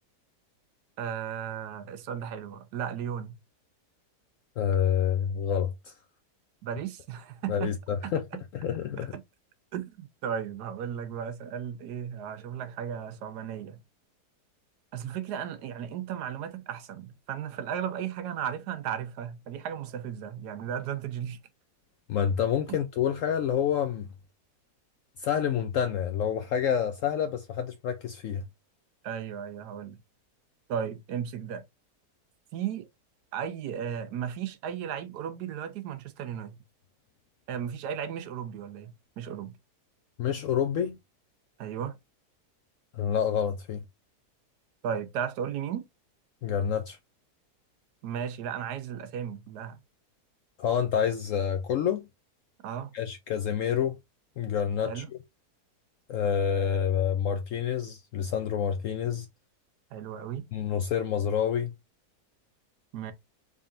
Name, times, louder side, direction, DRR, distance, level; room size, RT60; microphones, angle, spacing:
voice 1, 1.0-3.3 6.6-7.7 8.0-8.4 9.0-9.2 9.7-13.8 14.9-21.4 29.0-30.0 30.7-31.6 32.5-32.9 33.3-36.6 37.5-39.6 41.6-42.0 44.8-45.9 48.0-49.8 52.6-52.9 54.8-55.1 59.9-60.5 62.9-63.1, right 8 dB, 80° right, 1.2 m, -35 dB
voice 2, 4.6-5.9 7.5-8.2 8.5-9.1 22.1-24.1 25.2-28.4 40.2-41.0 42.9-43.8 46.4-47.0 50.6-52.1 52.9-54.0 54.4-55.0 56.1-59.3 60.5-61.7, left 8 dB, 70° left, 0.8 m, -28 dB
3.7 x 3.5 x 2.5 m
omnidirectional pair, 1.7 m